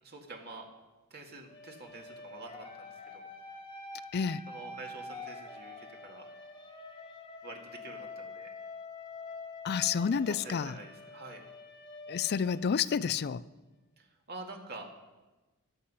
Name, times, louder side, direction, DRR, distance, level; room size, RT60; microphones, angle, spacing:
voice 1, 0.0-0.6 1.1-3.2 4.5-6.3 7.4-8.5 10.0-11.4 14.0-14.9, right 3 dB, 45° right, 2.2 m, -47 dB
sound 1, 1.5-13.3, left 3 dB, 20° left, 1.4 m, -46 dB
voice 2, 9.6-10.8 12.1-13.4, left 6 dB, 45° left, 0.4 m, -29 dB
20.0 x 8.2 x 5.7 m
head